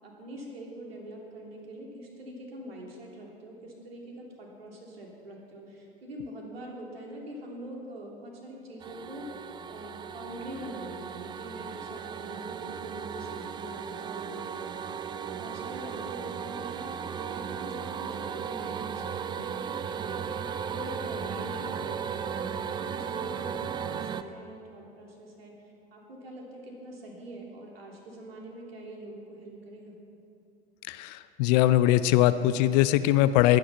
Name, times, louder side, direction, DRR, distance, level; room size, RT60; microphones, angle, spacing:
voice 1, 0.0-9.3 9.6-19.5 19.9-29.9, right 1 dB, 70° right, -1 dB, 3.5 m, -44 dB
sound 1, 8.8-24.2, right 7 dB, 15° right, 0.5 m, -36 dB
voice 2, 30.9-33.6, left 14 dB, 45° left, 14 dB, 0.6 m, -22 dB
20.5 x 10.0 x 5.8 m, 2.8 s
figure-of-eight pair, 90°, 31 cm